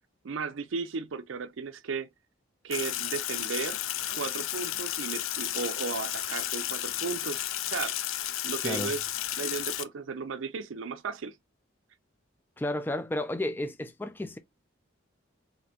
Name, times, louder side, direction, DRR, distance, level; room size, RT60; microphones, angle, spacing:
voice 1, 0.2-2.1 2.6-3.8 4.1-7.4 7.7-8.0 8.4-9.0 9.4-11.4, right 5 dB, 75° right, 0.5 m, -35 dB
Sink (filling or washing), 2.7-9.8, left 13 dB, 90° left, 0.5 m, -33 dB
voice 2, 12.6-14.4, left 1 dB, 10° left, 0.3 m, -32 dB
4.2 x 2.9 x 2.8 m
head